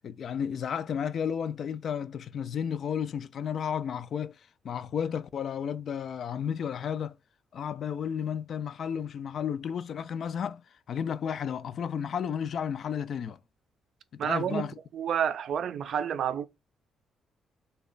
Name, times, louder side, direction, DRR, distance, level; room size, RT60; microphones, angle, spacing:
voice 1, 0.0-7.2 7.5-10.6 10.9-13.4 14.1-14.7, left 8 dB, 60° left, 0.3 m, -33 dB
voice 2, 14.2-14.7 14.9-16.5, right 8 dB, 65° right, 0.4 m, -29 dB
3.1 x 2.2 x 3.7 m
cardioid pair, 90°, 0 cm